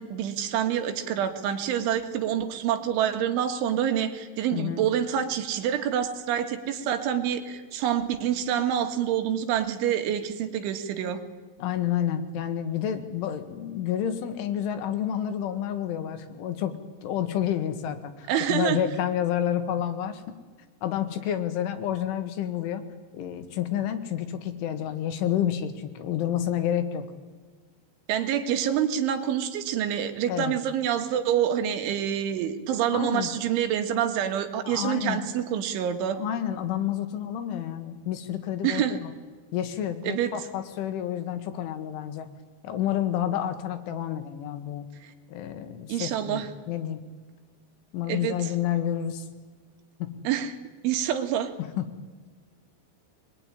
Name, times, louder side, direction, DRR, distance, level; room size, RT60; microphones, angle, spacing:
voice 1, 0.0-11.2 18.3-18.8 28.1-36.2 38.6-39.0 40.0-40.4 45.9-46.5 48.1-48.5 50.3-50.5 50.8-51.5, right 9 dB, 80° right, 7 dB, 4.1 m, -27 dB
voice 2, 4.5-4.8 11.6-20.2 20.8-22.8 23.1-27.1 30.3-30.6 32.9-33.3 34.7-35.2 36.2-39.1 39.5-42.3 42.6-44.9 45.3-47.0 47.9-49.3 50.0-50.2 51.6-51.9, left 10 dB, 85° left, 8 dB, 4.2 m, -29 dB
23.5 x 22.0 x 9.9 m, 1.4 s
omnidirectional pair, 5.5 m